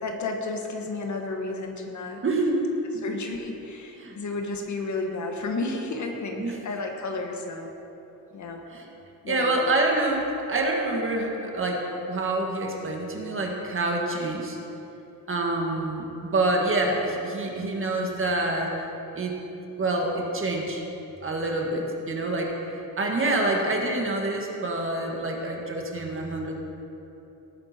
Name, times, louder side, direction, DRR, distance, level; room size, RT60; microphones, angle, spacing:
voice 1, 0.0-2.2 3.0-7.7 8.3-8.6 9.2-9.6, left 3 dB, 55° left, 2 dB, 1.5 m, -32 dB
voice 2, 2.2-3.0 3.9-4.2 6.4-6.6 8.7-8.9 9.3-14.6 15.3-18.7 19.1-19.4 19.8-20.8 21.2-26.6, right 2 dB, 35° right, 0 dB, 1.8 m, -27 dB
18.5 x 8.8 x 4.4 m, 3.0 s
wide cardioid pair, 135°, 35 cm